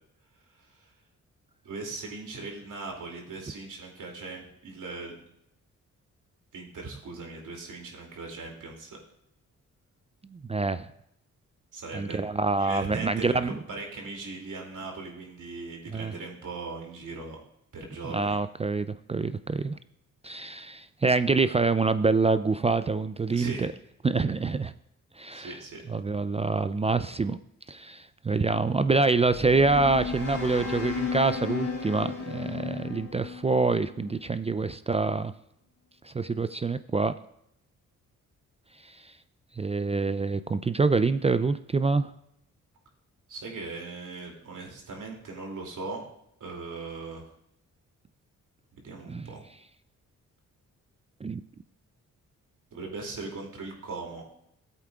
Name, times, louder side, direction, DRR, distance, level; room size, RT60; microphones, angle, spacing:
voice 1, 1.6-5.1 6.5-9.0 11.7-12.2 12.6-17.4 17.7-18.4 23.3-23.7 25.3-25.9 43.3-46.1 46.4-47.3 48.8-49.4 52.7-54.2, right 3 dB, 65° right, 0 dB, 2.7 m, -39 dB
voice 2, 10.3-10.9 11.9-13.6 15.9-16.1 18.0-19.8 20.2-23.7 24.0-24.7 25.2-25.6 25.9-27.4 27.7-35.3 36.0-37.1 38.8-39.0 39.6-42.1 49.1-49.2 51.2-51.4, right 3 dB, 20° right, 13 dB, 0.3 m, -26 dB
sound 1, 29.2-34.2, left 4 dB, 70° left, 3.2 m, -35 dB
14.5 x 8.2 x 2.4 m, 0.76 s
supercardioid pair, 55°, 33 cm